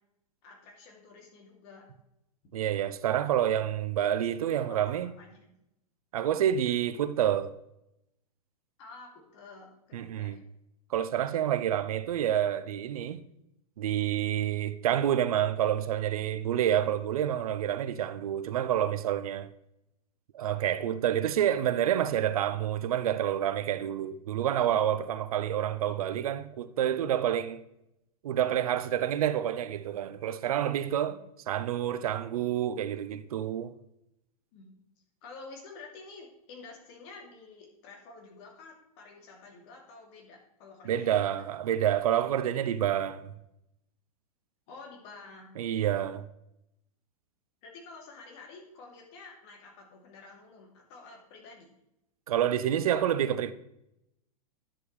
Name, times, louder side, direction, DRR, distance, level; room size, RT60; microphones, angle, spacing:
voice 1, 0.4-1.8 4.0-5.5 8.8-10.4 30.9-31.2 34.5-34.7 35.2-41.5 44.7-45.5 47.6-51.7, left 3 dB, 45° left, 2.8 m, -50 dB
voice 2, 2.5-5.1 6.1-7.5 9.9-10.4 10.9-13.2 13.8-19.5 20.3-27.6 28.2-31.2 31.5-33.7 40.8-43.3 45.6-46.3 52.3-53.5, right 10 dB, 70° right, 0.7 m, -28 dB
10.5 x 6.9 x 3.3 m
hypercardioid pair, 110°, 19 cm